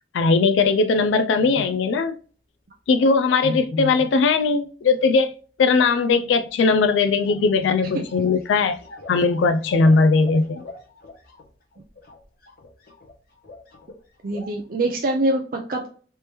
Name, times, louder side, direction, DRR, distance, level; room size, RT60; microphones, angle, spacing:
voice 1, 0.1-2.2 2.9-5.3 5.6-8.8 9.1-10.6, left 4 dB, 85° left, 0.3 m, -19 dB
sound 1, 0.7-0.8 1.4-1.9 3.4-4.2 6.5-6.6 6.8-14.0 14.3-14.7, left 3 dB, 55° left, 0.8 m, -39 dB
voice 2, 14.2-15.9, right 1 dB, 50° right, 0.5 m, -24 dB
3.4 x 2.9 x 3.0 m
head